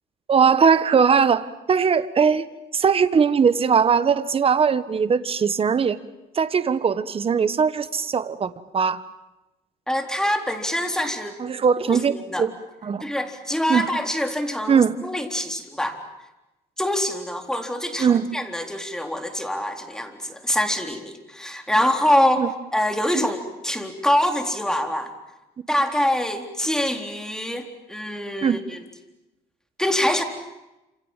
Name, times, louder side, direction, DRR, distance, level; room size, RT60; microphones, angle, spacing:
voice 1, 0.3-2.5 2.7-6.0 6.3-9.0 11.4-12.5 12.8-13.0 13.7-13.9 14.7-15.0 18.0-18.3 22.4-22.5 23.1-23.3 28.4-28.6, right 6 dB, 35° right, 14 dB, 1.5 m, -20 dB
voice 2, 9.9-11.4 11.9-12.5 13.0-16.0 16.8-25.1 25.7-28.8 29.8-30.2, left 1 dB, 5° left, 4 dB, 3.9 m, -25 dB
29.0 x 27.5 x 7.5 m, 1.0 s
cardioid pair, 110°, 17 cm